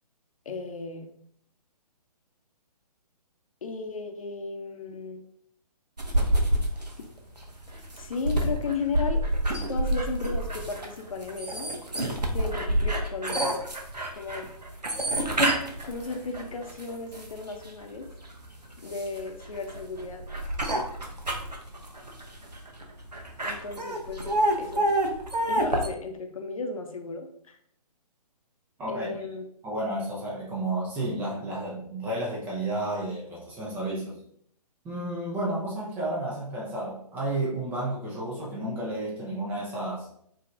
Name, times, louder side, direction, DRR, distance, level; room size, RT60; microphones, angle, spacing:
voice 1, 0.5-1.1 3.6-5.2 8.0-9.2 9.7-11.7 12.3-13.4 14.1-14.5 15.8-18.1 18.8-20.2 23.4-24.3 24.6-24.9 25.5-27.6 28.9-29.5, left 4 dB, 60° left, 5 dB, 0.7 m, -35 dB
sound 1, 6.0-17.7 18.2-25.9, right 1 dB, 90° right, 0.9 m, -28 dB
voice 2, 28.8-29.2 29.6-34.2 34.8-40.1, right 1 dB, 10° right, -4 dB, 0.4 m, -32 dB
4.9 x 2.8 x 2.5 m, 0.67 s
figure-of-eight pair, 135°, 20 cm